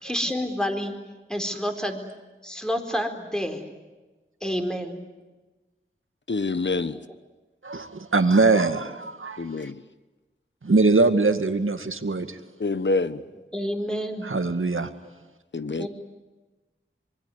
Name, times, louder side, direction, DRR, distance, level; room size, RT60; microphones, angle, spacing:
voice 1, 0.0-1.0 1.3-2.0 2.4-3.6 4.4-5.0 6.8-6.9 13.5-14.3 15.8-15.9, equal, 5° left, 4 dB, 4.3 m, -29 dB
voice 2, 6.3-7.0 9.4-9.8 12.6-13.2 15.5-15.9, left 3 dB, 60° left, 14 dB, 1.2 m, -26 dB
voice 3, 7.6-9.5 10.6-12.4 14.2-14.9, right 3 dB, 75° right, 8 dB, 2.1 m, -22 dB
26.0 x 23.5 x 9.5 m, 1.2 s
wide cardioid pair, 55°, 21 cm